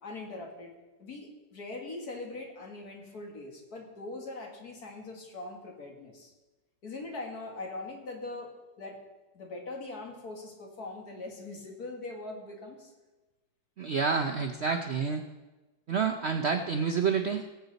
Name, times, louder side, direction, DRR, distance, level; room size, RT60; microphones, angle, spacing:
voice 1, 0.0-6.3 6.8-9.0 9.3-12.9 14.6-14.8, left 2 dB, 60° left, 1 dB, 2.4 m, -41 dB
voice 2, 13.8-15.2 15.9-17.5, right 5 dB, 60° right, 4 dB, 0.7 m, -28 dB
19.5 x 7.8 x 4.0 m, 1.1 s
omnidirectional pair, 1.8 m